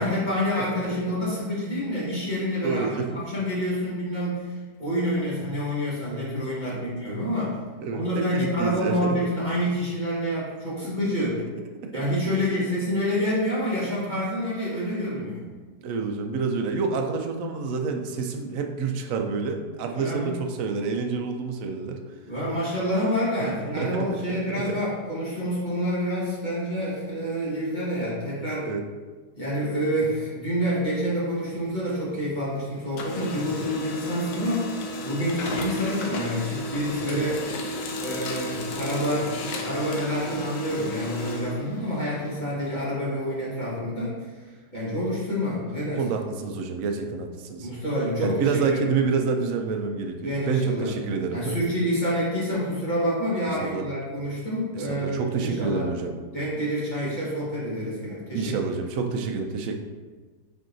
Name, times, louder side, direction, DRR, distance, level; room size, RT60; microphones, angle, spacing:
voice 1, 0.0-7.6 7.9-11.3 11.9-15.5 19.9-20.3 22.3-28.7 29.3-37.4 38.0-44.3 44.7-46.0 47.6-48.9 50.2-50.9 51.3-55.9 56.3-58.5, equal, 30° left, -8 dB, 1.3 m, -28 dB
voice 2, 0.6-1.2 2.6-3.1 6.7-6.9 7.8-9.3 10.8-10.9 11.2-11.5 11.8-12.0 12.4-12.5 15.8-22.0 23.6-24.8 28.6-28.8 33.5-33.6 37.1-37.2 46.0-47.7 48.2-51.6 53.6-53.9 54.7-56.1 58.3-59.8, right 5 dB, 70° right, 4 dB, 0.8 m, -28 dB
Printer, 31.3-32.5 32.8-42.4, left 1 dB, 85° left, 1.2 m, -34 dB
4.6 x 4.3 x 2.6 m, 1.4 s
omnidirectional pair, 1.8 m